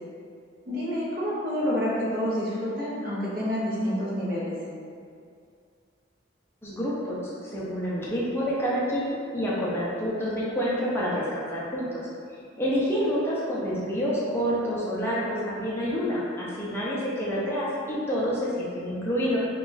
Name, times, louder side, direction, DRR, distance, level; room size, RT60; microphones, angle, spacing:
voice 1, 0.7-4.6, equal, 50° right, -7 dB, 0.8 m, -28 dB
voice 2, 6.6-11.9 12.6-19.4, equal, 15° left, -7 dB, 0.6 m, -28 dB
2.9 x 2.4 x 3.9 m, 2.3 s
head